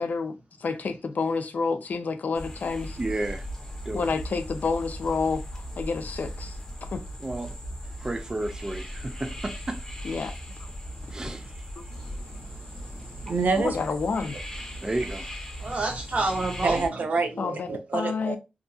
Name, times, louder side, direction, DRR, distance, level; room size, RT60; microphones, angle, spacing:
voice 1, 0.0-3.0 3.9-7.0 10.0-10.6 11.8-11.9 13.6-14.4 17.4-18.4, left 4 dB, 75° left, 0.4 m, -29 dB
sound 1, 2.3-16.9, equal, 20° left, 0.7 m, -38 dB
voice 2, 3.0-3.5 3.9-4.1 7.2-7.5 7.8-9.8 11.1-11.7 14.8-15.3, right 2 dB, 25° right, 0.3 m, -32 dB
voice 3, 11.9-13.8 16.6-18.4, right 4 dB, 80° right, 0.5 m, -29 dB
voice 4, 12.7-13.1 15.6-17.0, right 2 dB, 50° right, 0.8 m, -29 dB
2.8 x 2.3 x 2.6 m
wide cardioid pair, 110°, 3 cm